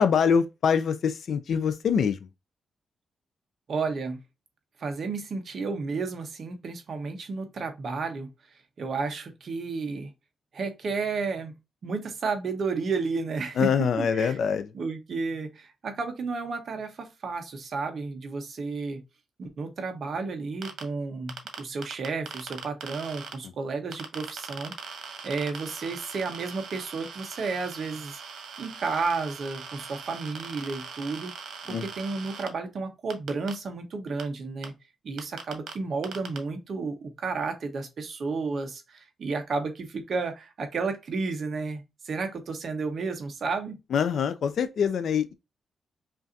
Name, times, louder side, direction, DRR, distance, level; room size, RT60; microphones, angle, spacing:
voice 1, 0.0-2.3 13.6-14.7 23.4-23.5 31.7-31.9 43.9-45.3, left 7 dB, 55° left, 0.4 m, -24 dB
voice 2, 3.7-4.2 4.8-8.3 8.8-10.1 10.5-11.5 11.8-14.4 14.7-19.0 19.4-24.7 25.2-28.1 28.6-31.3 31.7-34.8 35.0-43.8, right 4 dB, 45° right, 0.9 m, -32 dB
sound 1, 20.6-20.8 21.3-23.3 23.9-32.5 33.1-33.5 34.2-34.3 34.6-34.7 35.2-35.7 36.0-36.4, right 6 dB, 85° right, 1.0 m, -40 dB
5.6 x 2.5 x 2.6 m
wide cardioid pair, 180°, 0 cm